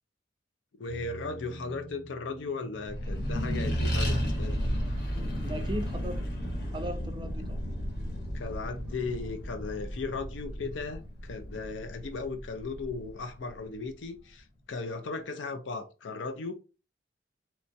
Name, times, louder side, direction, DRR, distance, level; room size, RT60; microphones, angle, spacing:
voice 1, 0.7-4.6 8.3-16.5, left 4 dB, 85° left, 0.5 m, -36 dB
sound 1, 0.9-11.6, equal, 20° left, 0.9 m, -48 dB
Accelerating revving vroom, 2.8-13.8, equal, 65° left, 1.1 m, -33 dB
voice 2, 5.3-6.2 6.7-7.6, equal, 25° right, 0.4 m, -37 dB
3.0 x 2.2 x 2.7 m
head